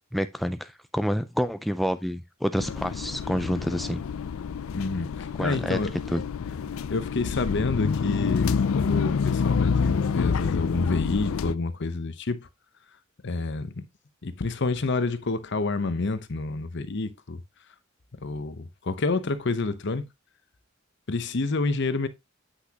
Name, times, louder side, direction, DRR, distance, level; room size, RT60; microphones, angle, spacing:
voice 1, 0.1-4.0 5.4-5.8 6.1-6.2, equal, ahead, 0.3 m, -28 dB
sound 1, 2.6-11.5, left 6 dB, 90° left, 0.4 m, -27 dB
voice 2, 4.7-5.9 6.9-12.5 13.2-13.8 14.2-17.4 18.2-20.1 21.1-22.1, left 3 dB, 60° left, 0.8 m, -28 dB
8.2 x 5.9 x 2.8 m
head